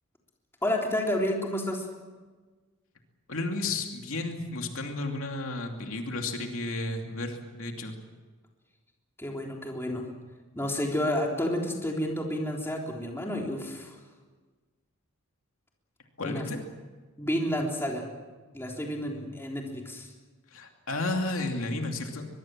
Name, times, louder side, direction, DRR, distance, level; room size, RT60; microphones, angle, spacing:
voice 1, 0.6-1.9 9.2-10.1 10.5-14.0 16.2-16.4 17.2-18.1 18.5-20.1, left 1 dB, 10° left, 0 dB, 3.4 m, -30 dB
voice 2, 3.3-8.0 16.2-16.6 20.5-22.3, left 2 dB, 70° left, 3 dB, 2.7 m, -32 dB
23.0 x 22.5 x 7.5 m, 1.4 s
head